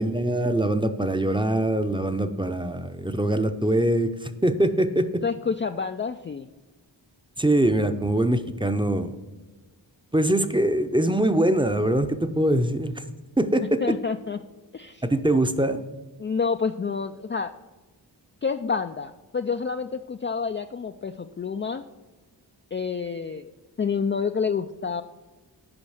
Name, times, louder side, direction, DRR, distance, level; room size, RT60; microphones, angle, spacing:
voice 1, 0.0-5.0 7.4-9.1 10.1-12.9 13.4-13.8 15.0-15.8, right 1 dB, 10° right, 9 dB, 0.7 m, -23 dB
voice 2, 5.2-6.5 13.8-14.4 14.7-15.0 16.2-17.5 18.4-21.8 22.7-23.5 23.8-25.0, left 5 dB, 30° left, 7 dB, 0.4 m, -28 dB
8.7 x 5.1 x 6.4 m, 1.2 s
cardioid pair, 40°, 45 cm